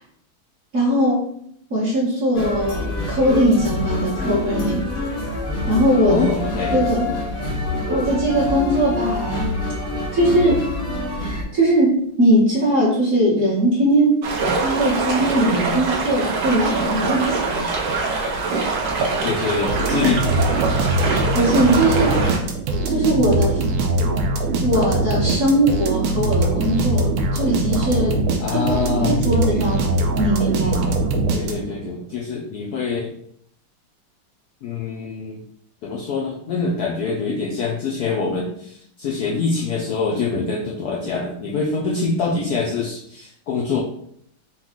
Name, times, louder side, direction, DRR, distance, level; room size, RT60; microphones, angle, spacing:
voice 1, 0.7-1.2 1.7-4.9 5.7-6.2 6.7-7.1 7.9-9.5 10.1-10.7 11.2-14.3 14.6-17.6 21.3-22.3 22.9-23.6 24.0-24.1 24.6-28.2 28.5-29.9 30.1-31.0, right 1 dB, 45° right, -7 dB, 1.2 m, -20 dB
carousel brighton, 2.3-11.4, left 2 dB, 45° left, 0.7 m, -26 dB
voice 2, 6.1-6.8 19.2-20.2 28.4-29.2 31.3-33.1 34.6-35.4 35.8-43.8, left 4 dB, 80° left, -2 dB, 0.8 m, -24 dB
sound 1, 14.2-22.4, right 3 dB, 65° right, 1.1 m, -23 dB
sound 2, 19.7-31.9, right 2 dB, 85° right, 1.5 m, -22 dB
4.5 x 2.3 x 3.6 m, 0.69 s
omnidirectional pair, 2.3 m